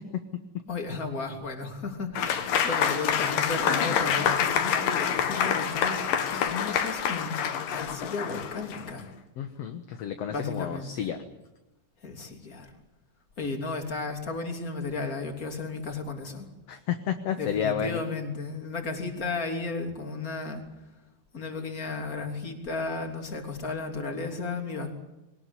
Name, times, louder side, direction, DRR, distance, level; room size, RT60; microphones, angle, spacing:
voice 1, 0.7-6.0 6.3-7.3 7.7-9.1 10.3-11.1 12.0-12.7 13.4-16.5 17.4-20.7 21.3-24.9, left 3 dB, 25° left, 4 dB, 3.3 m, -34 dB
Applause / Crowd, 2.2-9.0, left 8 dB, 75° left, 3.3 m, -27 dB
voice 2, 9.4-11.2 16.7-18.0, left 8 dB, 60° left, 7 dB, 2.0 m, -31 dB
22.5 x 19.0 x 10.0 m, 0.98 s
omnidirectional pair, 3.9 m